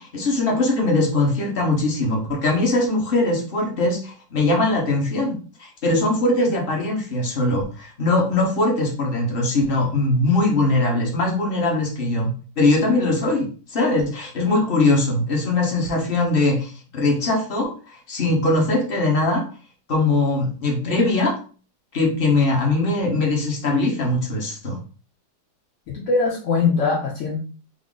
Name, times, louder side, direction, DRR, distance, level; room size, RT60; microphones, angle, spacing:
voice 1, 0.0-19.4 19.9-21.4 21.9-24.8, left 2 dB, 40° left, 0 dB, 1.0 m, -21 dB
voice 2, 25.9-27.4, left 4 dB, 65° left, -2 dB, 0.8 m, -21 dB
3.6 x 2.0 x 3.7 m, 0.38 s
omnidirectional pair, 1.9 m